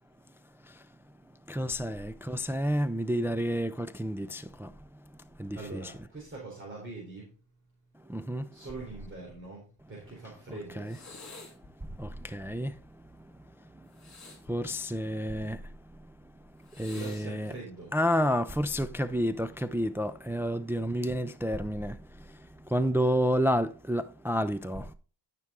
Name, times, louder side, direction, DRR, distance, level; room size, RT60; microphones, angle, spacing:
voice 1, 1.5-4.7 5.4-6.1 8.1-8.9 10.2-11.0 11.8-13.3 13.7-16.1 16.5-17.5 17.9-24.9, equal, 5° right, 0.4 m, -31 dB
voice 2, 5.5-7.3 8.5-10.9 16.9-17.9, right 3 dB, 30° right, 3.9 m, -43 dB
sound 1, 10.8-11.7 13.9-15.4 16.6-17.2 18.3-18.6, left 2 dB, 40° left, 3.3 m, -49 dB
12.5 x 6.0 x 3.8 m
wide cardioid pair, 110°, 42 cm